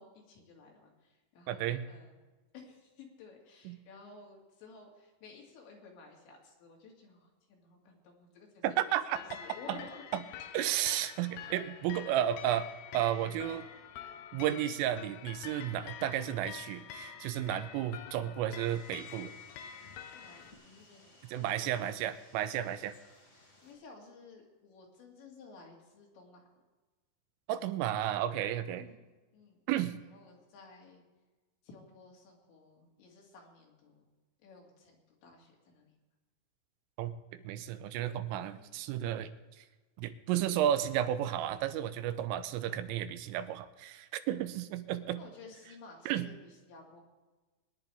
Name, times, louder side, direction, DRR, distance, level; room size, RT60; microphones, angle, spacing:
voice 1, 0.0-2.2 2.5-10.0 11.4-11.6 15.7-15.9 20.1-22.0 23.6-26.4 28.7-29.6 30.0-31.0 31.6-34.1 34.4-35.9 38.5-38.8 45.2-47.0, left 4 dB, 65° left, -1 dB, 4.5 m, -54 dB
voice 2, 1.5-1.8 3.7-3.8 8.6-9.2 9.7-9.8 10.5-12.7 12.9-13.7 14.3-19.3 21.3-23.0 27.5-28.8 29.7-30.0 37.0-39.3 39.6-39.7 40.0-45.2 46.1-46.3, right 11 dB, 90° right, 11 dB, 3.3 m, -33 dB
sound 1, 8.9-20.5, left 9 dB, 90° left, 2.4 m, -47 dB
sound 2, 18.6-23.7, left 2 dB, 35° left, 1.2 m, -60 dB
22.5 x 10.5 x 3.5 m, 1.2 s
omnidirectional pair, 5.8 m